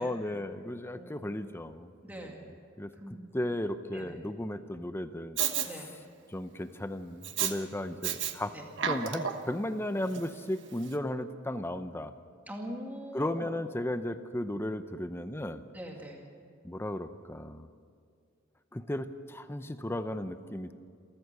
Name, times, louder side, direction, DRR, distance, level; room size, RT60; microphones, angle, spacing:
voice 1, 0.0-1.9 2.2-2.3 2.8-2.9 3.3-5.9 6.3-8.6 8.8-12.1 13.1-15.6 16.6-17.7 18.7-20.7, left 1 dB, 10° left, 10 dB, 0.7 m, -35 dB
voice 2, 2.0-2.4 3.0-3.2 3.9-4.1 5.6-5.9 8.5-8.6 12.5-13.5 15.7-16.2, equal, 10° right, 0 dB, 2.2 m, -42 dB
Respiratory sounds, 5.4-5.7 7.2-7.5 8.0-8.3 8.7-9.5 10.1-10.2, right 9 dB, 60° right, 1.2 m, -31 dB
28.0 x 14.5 x 6.7 m, 2.2 s
head